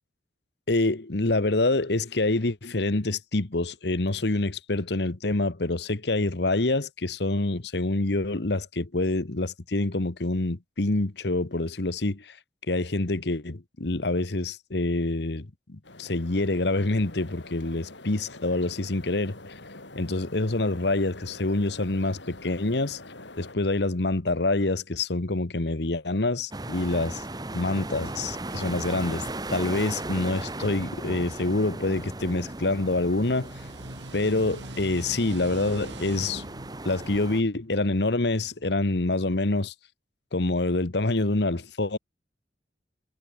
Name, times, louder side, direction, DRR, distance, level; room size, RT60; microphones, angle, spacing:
voice 1, 0.7-12.4 12.7-19.5 19.9-23.0 23.4-27.2 27.5-33.5 34.1-36.4 36.8-39.7 40.3-42.0, left 2 dB, 65° left, 1.2 m, -26 dB
sound 1, 15.8-23.6, left 2 dB, 80° left, 5.1 m, -45 dB
sound 2, 26.5-37.4, right 2 dB, 20° right, 1.3 m, -37 dB
sound 3, 32.9-38.2, right 2 dB, 75° right, 3.6 m, -43 dB
head